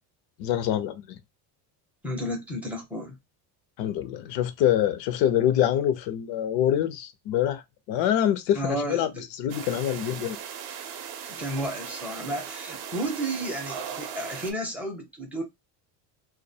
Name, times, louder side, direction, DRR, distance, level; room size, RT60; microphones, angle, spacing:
voice 1, 0.4-1.2 3.8-7.6 7.9-9.1 9.4-10.4, left 11 dB, 70° left, 0.6 m, -25 dB
voice 2, 2.0-3.2 8.5-9.2 11.4-15.4, right 1 dB, 5° right, 0.5 m, -32 dB
sound 1, 9.5-14.5, right 8 dB, 55° right, 0.6 m, -38 dB
2.3 x 2.2 x 2.6 m
cardioid pair, 160°, 46 cm